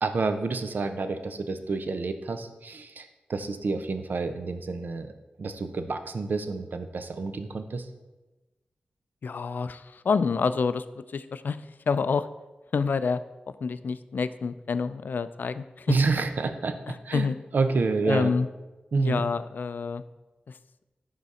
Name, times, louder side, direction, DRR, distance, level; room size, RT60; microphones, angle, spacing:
voice 1, 0.0-5.1 5.4-7.9 15.9-17.3 17.5-18.3 18.9-19.3, right 3 dB, 65° right, 8 dB, 0.6 m, -28 dB
voice 2, 9.2-11.6 11.9-12.3 12.7-13.2 13.5-16.0 16.9-17.3 18.1-18.5 19.0-20.0, left 5 dB, 65° left, 13 dB, 0.4 m, -28 dB
11.0 x 4.0 x 4.2 m, 1.1 s
wide cardioid pair, 90°, 3 cm